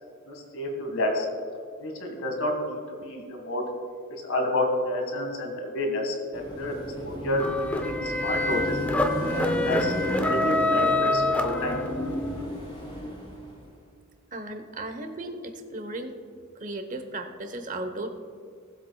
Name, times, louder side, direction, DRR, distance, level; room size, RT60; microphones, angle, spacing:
voice 1, 0.3-1.3 1.8-3.6 4.2-6.8 7.0-8.8 9.3-11.8, left 1 dB, 80° left, 2 dB, 1.8 m, -30 dB
Car passing by / Traffic noise roadway noise / Engine, 6.3-13.7, equal, 20° left, 2.7 m, -33 dB
sound 1, 7.4-12.2, left 2 dB, 5° left, 0.6 m, -26 dB
voice 2, 14.3-16.2 16.6-18.1, right 2 dB, 40° right, 7 dB, 0.9 m, -35 dB
19.0 x 8.0 x 2.3 m, 2.2 s
head